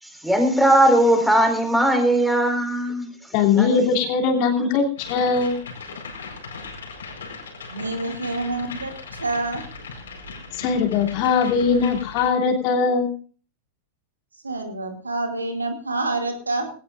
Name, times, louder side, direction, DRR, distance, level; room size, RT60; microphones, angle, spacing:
voice 1, 0.0-3.1 3.6-3.7 4.6-4.7, right 1 dB, ahead, 4 dB, 4.6 m, -19 dB
voice 2, 3.3-5.6 10.5-13.1, left 5 dB, 45° left, 2 dB, 3.0 m, -20 dB
sound 1, 5.0-12.3, left 4 dB, 65° left, 4.5 m, -38 dB
voice 3, 7.7-9.6 14.4-16.7, right 2 dB, 80° right, 5 dB, 2.5 m, -27 dB
20.0 x 18.0 x 2.5 m, 0.39 s
figure-of-eight pair, 90°, 0 cm